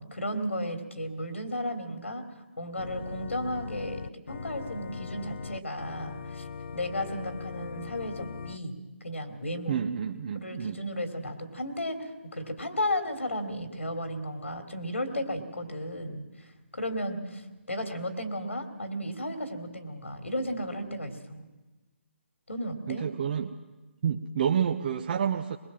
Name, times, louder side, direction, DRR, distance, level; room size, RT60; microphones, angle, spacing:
voice 1, 0.0-4.0 4.3-6.5 6.7-9.8 10.3-21.5 22.5-23.1, equal, 85° left, 7 dB, 3.3 m, -34 dB
Organ, 2.8-8.6, left 5 dB, 65° left, 0.7 m, -40 dB
voice 2, 9.7-10.8 22.9-23.5 24.0-25.6, right 8 dB, 45° right, 4 dB, 1.1 m, -29 dB
22.5 x 22.0 x 7.6 m, 1.2 s
figure-of-eight pair, 145°, 7 cm